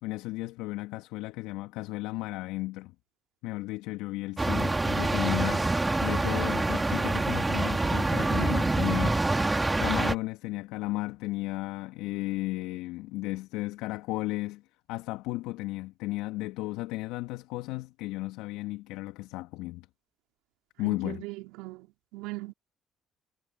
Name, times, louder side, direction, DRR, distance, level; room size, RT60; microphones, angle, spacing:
voice 1, 0.0-2.9 3.4-5.7 6.0-9.2 9.8-14.6 14.9-19.9 20.8-21.2, left 19 dB, 75° left, 2.5 m, -34 dB
sound 1, 4.4-10.1, right 2 dB, 20° right, 3.7 m, -26 dB
voice 2, 21.0-21.9 22.1-22.5, right 22 dB, 75° right, 4.9 m, -39 dB
hypercardioid pair, 50°, 0 cm